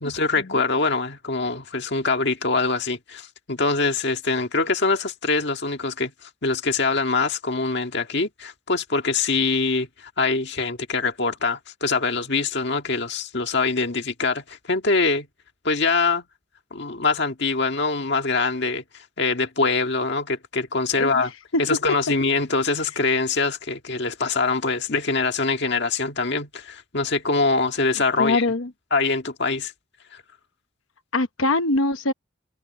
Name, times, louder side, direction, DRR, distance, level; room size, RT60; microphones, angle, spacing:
voice 1, 0.0-15.3 15.6-16.2 16.7-18.8 19.2-21.3 21.6-28.5 28.9-29.7 30.1-30.2, left 3 dB, 55° left, 1.8 m, -24 dB
voice 2, 28.2-28.7 31.1-32.1, left 2 dB, 75° left, 1.0 m, -23 dB
head